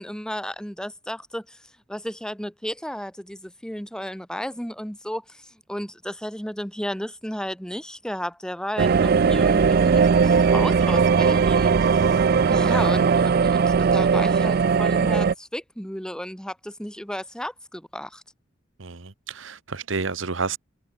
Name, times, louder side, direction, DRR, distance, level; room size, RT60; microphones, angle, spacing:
voice 1, 0.0-1.6 1.9-12.2 12.5-18.2, equal, 5° left, 2.4 m, -33 dB
sound 1, 8.8-15.3, right 5 dB, 50° right, 0.4 m, -19 dB
voice 2, 18.8-20.6, right 4 dB, 80° right, 1.2 m, -30 dB
head